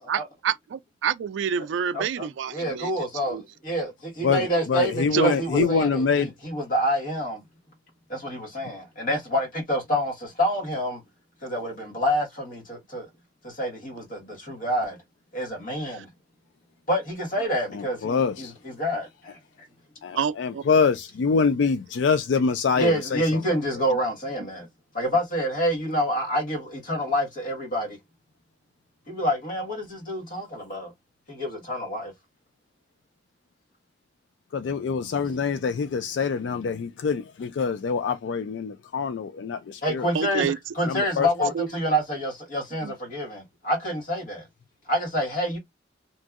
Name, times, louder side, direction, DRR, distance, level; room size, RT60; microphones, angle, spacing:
voice 1, 0.0-2.9 3.3-3.4 5.1-5.7 15.9-16.1 18.2-18.3 20.1-20.7 40.1-40.6 41.5-41.7 42.8-42.9, right 7 dB, 85° right, 0.3 m, -28 dB
voice 2, 1.9-7.4 8.1-11.0 11.4-13.1 13.4-15.0 15.3-16.1 16.9-19.4 22.8-24.7 24.9-28.0 29.1-30.9 31.3-32.1 39.8-44.5 44.9-45.6, equal, 50° left, 1.5 m, -27 dB
voice 3, 4.2-6.3 17.7-18.5 20.0-23.4 34.5-40.1 40.9-41.5, left 5 dB, 75° left, 0.3 m, -25 dB
2.9 x 2.6 x 2.4 m
head